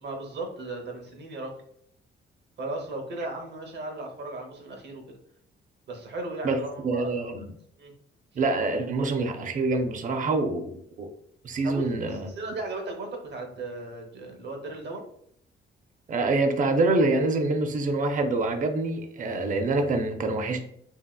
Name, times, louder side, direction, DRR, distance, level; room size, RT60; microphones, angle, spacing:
voice 1, 0.0-1.6 2.6-5.2 5.9-7.3 7.8-7.9 11.6-11.9 12.1-15.1, right 2 dB, 60° right, 0.9 m, -36 dB
voice 2, 6.4-7.4 8.4-11.1 11.4-12.3 16.1-20.6, right 2 dB, 40° right, 0.5 m, -26 dB
2.8 x 2.7 x 2.2 m
cardioid pair, 90°, 20 cm